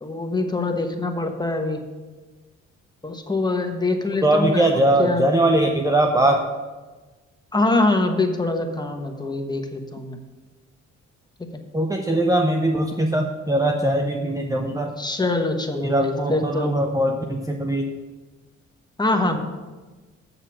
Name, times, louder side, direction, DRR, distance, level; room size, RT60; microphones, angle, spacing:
voice 1, 0.0-1.8 3.0-5.2 7.5-10.2 11.4-11.5 15.0-16.7 19.0-19.4, left 2 dB, 15° left, 4 dB, 1.2 m, -24 dB
voice 2, 4.2-6.5 11.7-15.0 15.8-17.9, right 1 dB, 10° right, 3 dB, 0.7 m, -21 dB
7.5 x 6.7 x 6.2 m, 1.3 s
cardioid pair, 90°, 30 cm